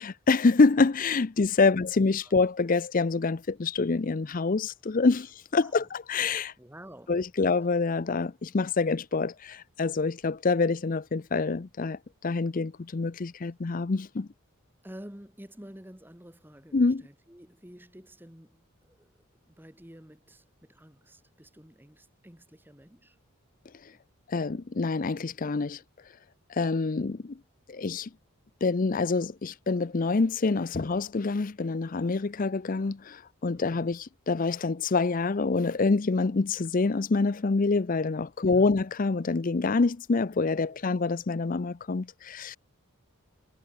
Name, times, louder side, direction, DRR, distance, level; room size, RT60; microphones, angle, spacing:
voice 1, 0.0-6.5 7.1-14.3 16.7-17.0 24.3-25.8 26.5-27.4 27.7-28.1 28.6-42.6, left 3 dB, 40° left, 0.5 m, -26 dB
voice 2, 5.6-5.9 6.6-7.2 14.8-23.2 33.5-33.9 38.4-38.7 40.7-40.8, equal, 10° right, 1.7 m, -50 dB
head